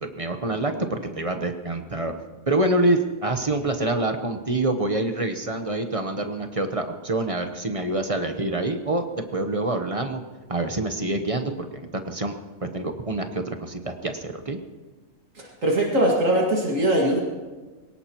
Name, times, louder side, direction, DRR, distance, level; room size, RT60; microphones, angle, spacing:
voice 1, 0.0-2.1 2.5-9.1 9.3-10.2 10.5-12.4 12.6-14.6, right 2 dB, 30° right, 6 dB, 1.0 m, -26 dB
voice 2, 15.3-17.2, right 1 dB, 75° right, -2 dB, 2.5 m, -21 dB
22.0 x 18.5 x 3.0 m, 1.3 s
omnidirectional pair, 1.4 m